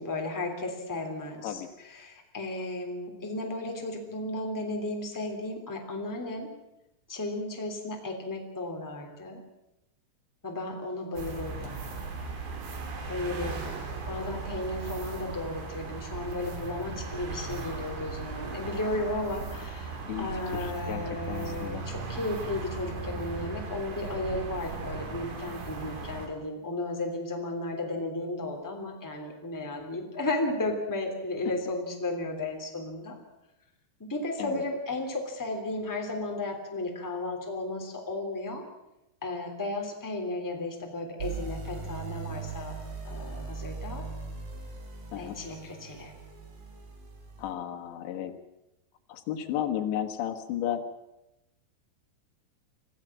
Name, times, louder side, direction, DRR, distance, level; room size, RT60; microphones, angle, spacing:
voice 1, 0.0-6.5 7.1-9.4 10.4-11.8 13.1-33.2 34.0-38.6 39.2-42.7 43.0-44.0 45.2-46.1, left 2 dB, 5° left, 2 dB, 2.4 m, -34 dB
sound 1, 11.2-26.3, right 4 dB, 80° right, 5.2 m, -37 dB
voice 2, 20.1-21.0 21.3-21.9 34.4-34.7 45.1-45.4 47.4-48.3 49.1-50.8, left 10 dB, 85° left, 6 dB, 3.7 m, -33 dB
sound 2, 41.2-47.5, right 5 dB, 55° right, 4.6 m, -39 dB
25.5 x 16.5 x 7.5 m, 0.92 s
omnidirectional pair, 5.0 m